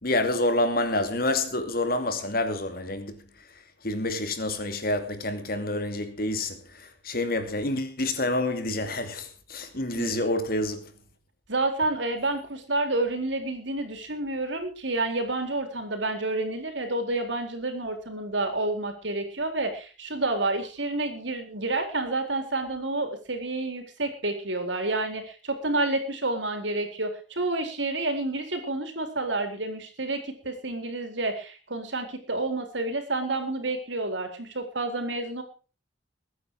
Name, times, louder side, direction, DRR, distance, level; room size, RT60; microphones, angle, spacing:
voice 1, 0.0-10.8, left 2 dB, 50° left, 2.6 m, -28 dB
voice 2, 11.5-35.4, right 2 dB, 75° right, 4.0 m, -29 dB
22.0 x 9.5 x 4.9 m
head